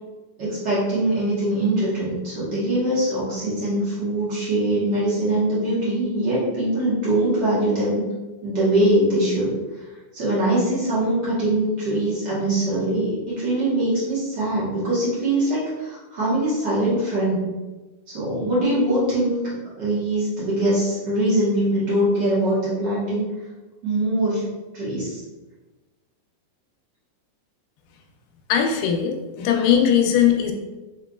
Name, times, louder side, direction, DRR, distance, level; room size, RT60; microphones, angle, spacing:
voice 1, 0.4-8.1 8.4-9.5 10.1-17.5 18.1-19.5 19.8-23.2 23.8-25.2, right 1 dB, 65° right, -9 dB, 1.0 m, -22 dB
voice 2, 28.5-30.5, left 8 dB, 90° left, 2 dB, 2.3 m, -19 dB
6.6 x 3.0 x 2.3 m, 1.2 s
omnidirectional pair, 3.9 m